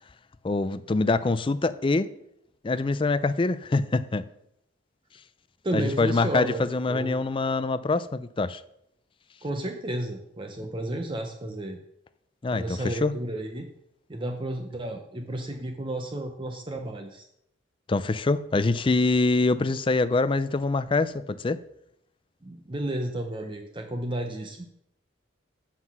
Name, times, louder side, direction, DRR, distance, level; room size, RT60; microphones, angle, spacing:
voice 1, 0.4-2.1 2.6-4.3 5.7-8.6 12.4-13.1 17.9-21.6, left 3 dB, 25° left, 14 dB, 0.4 m, -25 dB
voice 2, 5.6-7.2 9.4-11.8 12.5-13.7 14.1-17.3 22.4-24.7, right 1 dB, 25° right, 5 dB, 0.7 m, -32 dB
7.7 x 5.8 x 6.0 m, 0.76 s
head